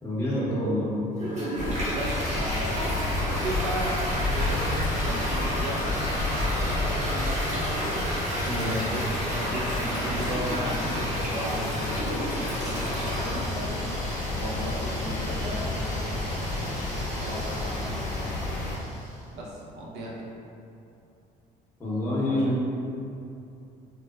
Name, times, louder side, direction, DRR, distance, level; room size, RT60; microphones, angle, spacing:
voice 1, 0.0-0.9 8.4-8.8 21.8-22.6, left 1 dB, 15° left, -10 dB, 0.8 m, -27 dB
Toilet flush, 1.1-19.1, equal, 45° right, 1.1 m, -33 dB
sound 1, 1.6-18.8, left 2 dB, 50° left, 0.6 m, -30 dB
voice 2, 1.8-4.8 5.0-8.0 8.7-9.0 9.4-13.7 14.3-16.7 17.2-18.1 19.3-20.2 22.3-22.6, right 1 dB, 80° right, -4 dB, 0.7 m, -36 dB
4.0 x 2.1 x 2.3 m, 2.7 s
cardioid pair, 110°, 17 cm